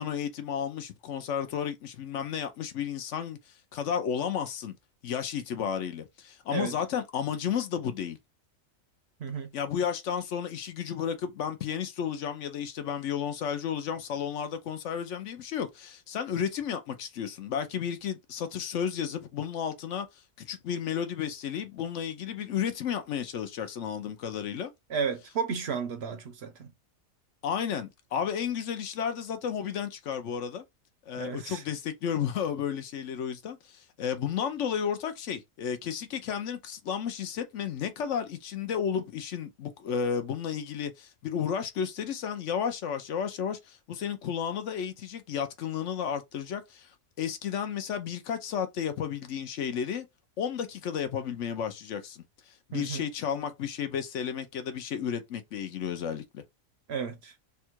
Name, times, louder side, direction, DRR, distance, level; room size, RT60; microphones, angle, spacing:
voice 1, 0.0-4.7 5.0-8.2 9.5-20.1 20.4-24.7 27.4-30.6 31.1-46.9 47.2-50.1 50.4-56.4, left 8 dB, 65° left, 1.0 m, -32 dB
voice 2, 9.2-9.5 24.9-26.7 31.2-31.6 52.7-53.0 56.9-57.3, right 6 dB, 60° right, 0.8 m, -33 dB
3.6 x 2.3 x 4.4 m
omnidirectional pair, 1.4 m